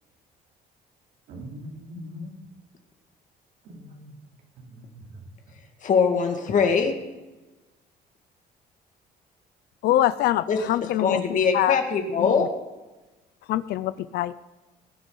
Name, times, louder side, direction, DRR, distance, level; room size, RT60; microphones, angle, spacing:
voice 1, 1.3-2.3 3.6-4.2 4.6-5.2, equal, 80° right, 0 dB, 2.9 m, -41 dB
voice 2, 5.8-7.0 10.5-10.6 11.0-12.5, left 6 dB, 50° left, 4 dB, 2.1 m, -22 dB
voice 3, 9.8-11.8 12.2-12.5 13.5-14.3, left 13 dB, 75° left, 15 dB, 0.6 m, -24 dB
19.5 x 10.0 x 4.0 m, 1.1 s
cardioid pair, 110°, 17 cm